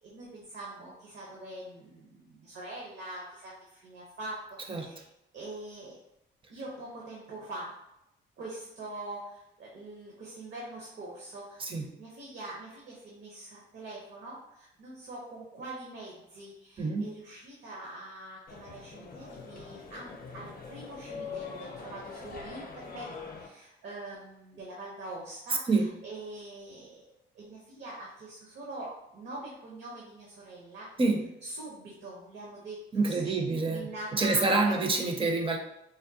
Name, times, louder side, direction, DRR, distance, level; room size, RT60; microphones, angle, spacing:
voice 1, 0.0-4.4 4.6-5.1 5.3-6.0 6.5-7.7 8.4-23.1 23.4-27.0 27.3-31.0 31.4-33.4 33.7-34.7, right 2 dB, 65° right, -3 dB, 0.8 m, -44 dB
voice 2, 16.8-17.1 25.7-25.9 31.0-31.2 32.9-35.6, right 3 dB, 25° right, 3 dB, 0.5 m, -27 dB
sound 1, 18.5-23.5, left 5 dB, 45° left, 0.6 m, -43 dB
3.5 x 2.0 x 2.7 m, 0.86 s
cardioid pair, 90°, 20 cm